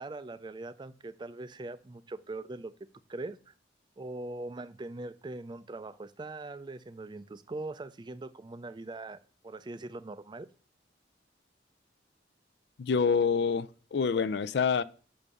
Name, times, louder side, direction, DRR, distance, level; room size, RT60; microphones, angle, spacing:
voice 1, 0.0-2.7 3.1-3.5 4.0-9.2 9.4-10.5, right 2 dB, 25° right, 0.4 m, -41 dB
voice 2, 12.8-14.8, left 5 dB, 65° left, 0.4 m, -27 dB
6.2 x 5.3 x 6.8 m
head